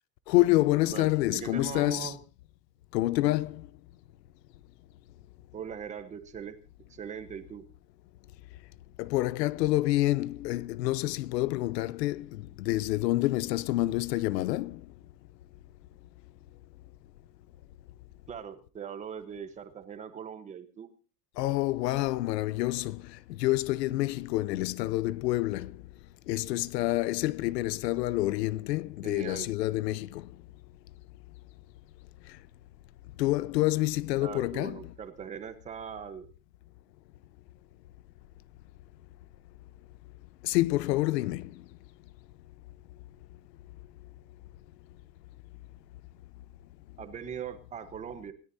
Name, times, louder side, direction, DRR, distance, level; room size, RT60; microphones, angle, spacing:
voice 1, 0.3-2.2 2.9-3.7 9.0-14.8 21.4-25.8 26.3-30.3 33.2-34.8 40.4-41.6, left 17 dB, 75° left, 0.9 m, -28 dB
voice 2, 0.9-2.2 5.5-6.6 6.9-7.7 18.3-20.9 29.0-29.5 34.2-36.3 47.0-48.3, right 7 dB, 15° right, 1.1 m, -40 dB
27.0 x 14.5 x 2.8 m
supercardioid pair, 175°, 50 cm